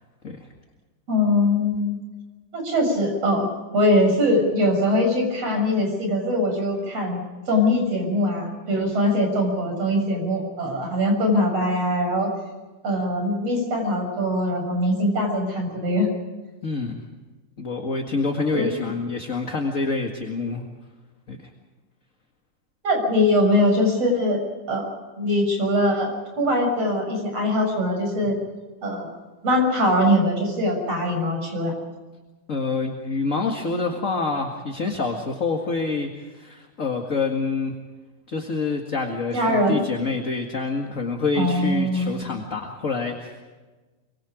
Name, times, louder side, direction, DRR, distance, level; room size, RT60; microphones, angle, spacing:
voice 1, 1.1-2.0 2.5-12.3 12.8-16.1 18.5-18.8 22.8-24.4 24.7-24.9 25.2-26.1 26.4-28.4 28.8-29.1 29.4-31.7 39.3-39.8 41.4-42.1, left 1 dB, 50° right, 2 dB, 7.8 m, -22 dB
voice 2, 16.6-17.0 17.6-20.6 21.3-21.5 32.5-37.7 38.3-43.4, left 4 dB, 30° left, 2 dB, 1.8 m, -27 dB
25.0 x 24.5 x 5.1 m, 1.2 s
omnidirectional pair, 3.6 m